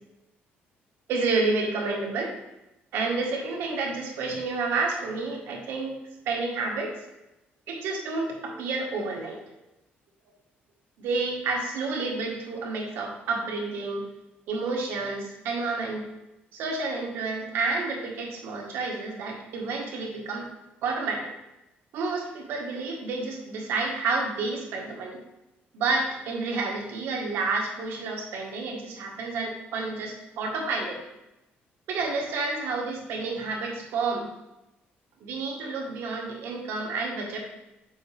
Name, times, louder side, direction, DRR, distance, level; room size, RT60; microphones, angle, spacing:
voice 1, 1.1-2.3 2.9-6.0 6.3-6.9 7.7-9.4 11.0-14.0 14.5-16.1 16.5-20.5 20.8-21.3 21.9-25.2 25.7-31.0 31.9-34.3 35.2-37.4, right 3 dB, 75° right, 1 dB, 1.8 m, -30 dB
7.6 x 6.5 x 3.6 m, 0.95 s
cardioid pair, 180°, 4 cm